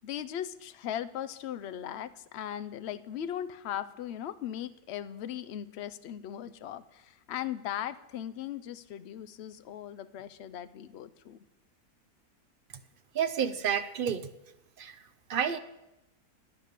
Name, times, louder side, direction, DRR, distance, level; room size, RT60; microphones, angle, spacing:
voice 1, 0.0-11.4, left 10 dB, 60° left, 13 dB, 0.7 m, -38 dB
voice 2, 13.1-14.3 14.8-15.0 15.3-15.6, right 8 dB, 70° right, 11 dB, 0.5 m, -30 dB
10.0 x 9.4 x 6.7 m, 0.90 s
omnidirectional pair, 1.6 m